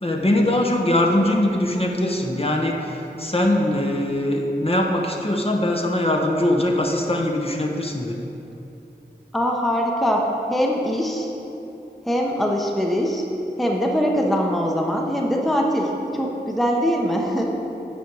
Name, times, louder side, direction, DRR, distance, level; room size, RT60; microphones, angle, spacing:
voice 1, 0.0-8.2, left 1 dB, 35° left, 0 dB, 0.8 m, -22 dB
voice 2, 9.3-11.3 12.1-13.2 13.6-17.5, equal, ahead, 0 dB, 0.7 m, -22 dB
8.3 x 5.0 x 4.6 m, 2.9 s
wide cardioid pair, 55°, 18 cm